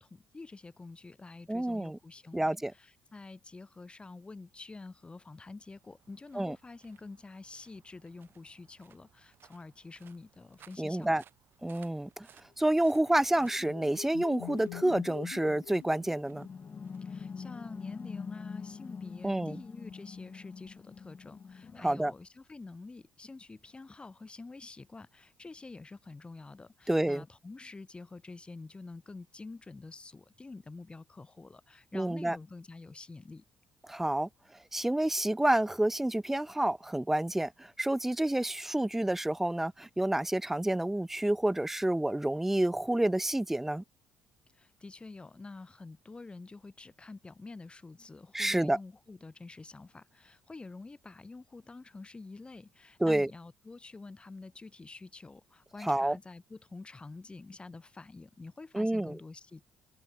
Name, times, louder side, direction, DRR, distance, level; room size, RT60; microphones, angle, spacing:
voice 1, 0.0-11.2 17.0-33.4 44.5-59.6, left 3 dB, 25° left, 3.1 m, -48 dB
voice 2, 1.5-2.0 2.3-2.7 6.4-6.6 10.8-11.2 11.6-12.3 12.6-16.5 19.2-19.6 21.8-22.1 26.9-27.2 31.9-32.4 33.9-34.3 34.7-43.8 48.3-48.8 53.0-53.3 55.8-56.2 58.7-59.2, right 1 dB, 5° right, 0.4 m, -29 dB
sound 1, 5.4-18.7, right 9 dB, 60° right, 4.4 m, -64 dB
sound 2, 13.1-16.8, left 29 dB, 85° left, 0.6 m, -46 dB
sound 3, 16.3-22.0, left 5 dB, 40° left, 2.7 m, -44 dB
supercardioid pair, 60°, 4 cm